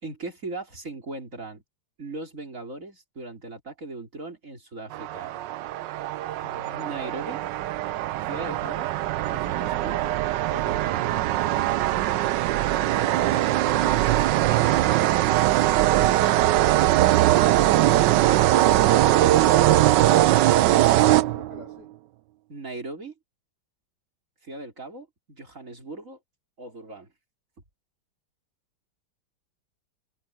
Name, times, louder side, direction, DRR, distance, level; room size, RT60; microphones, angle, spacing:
voice 1, 0.0-1.6 2.0-5.3 6.4-7.4 8.2-8.9 9.2-10.2 10.5-11.2 22.5-23.1 24.4-26.2 26.6-27.1, right 3 dB, 35° right, 3.9 m, -38 dB
sound 1, 4.9-21.7, right 14 dB, 70° right, 1.1 m, -21 dB
voice 2, 12.7-14.6 16.0-17.6 20.2-21.9, left 3 dB, 50° left, 6.1 m, -46 dB
omnidirectional pair, 2.3 m